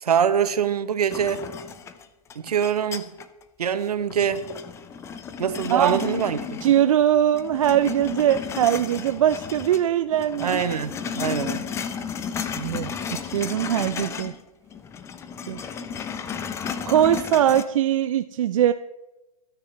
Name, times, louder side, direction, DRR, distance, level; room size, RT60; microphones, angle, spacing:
voice 1, 0.0-1.4 2.4-3.1 3.6-4.4 5.4-6.6 10.4-11.6, right 8 dB, 70° right, 1.3 m, -24 dB
sound 1, 1.1-3.4 3.8-7.0 7.3-9.8 10.1-14.4 14.7-17.6, left 7 dB, 15° left, 0.7 m, -33 dB
voice 2, 5.7-6.0 6.6-10.6 12.6-14.3 15.5-15.7 16.8-18.7, right 10 dB, 55° right, 0.6 m, -21 dB
26.5 x 9.7 x 3.4 m
hypercardioid pair, 130°, 20 cm